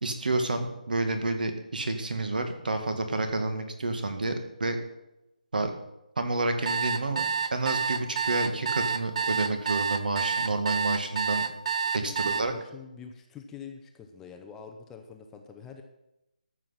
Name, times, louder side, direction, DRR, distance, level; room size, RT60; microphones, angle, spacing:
voice 1, 0.0-4.3 4.6-4.8 5.5-5.7 6.2-7.2 7.5-11.4 11.9-12.5, right 2 dB, 70° right, 7 dB, 2.0 m, -29 dB
sound 1, 6.7-12.4, right 5 dB, 45° right, 0.7 m, -28 dB
voice 2, 12.0-15.8, left 6 dB, 5° left, 4 dB, 0.5 m, -45 dB
13.5 x 6.3 x 5.8 m, 0.90 s
hypercardioid pair, 165°, 5 cm